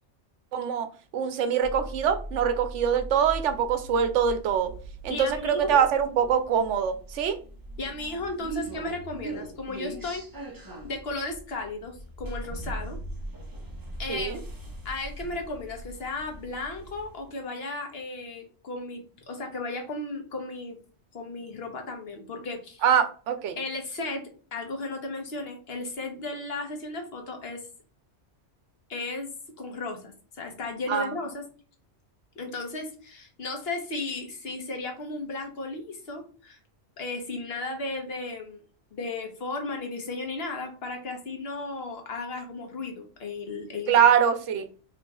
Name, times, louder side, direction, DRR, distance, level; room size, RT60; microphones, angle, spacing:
voice 1, 0.5-0.9 1.1-4.7 5.0-7.4 14.1-14.4 22.8-23.6 30.9-31.1 43.9-44.7, right 8 dB, 85° right, 0.9 m, -24 dB
sound 1, 1.6-17.3, right 1 dB, 25° right, 0.5 m, -40 dB
voice 2, 5.1-5.8 7.8-10.2 10.8-13.0 14.0-14.4 14.8-20.8 21.1-22.8 23.6-27.7 28.9-29.3 29.6-31.4 32.4-36.6 37.0-38.6 38.9-44.0, left 2 dB, 60° left, 1.1 m, -35 dB
3.1 x 2.3 x 4.0 m
omnidirectional pair, 1.2 m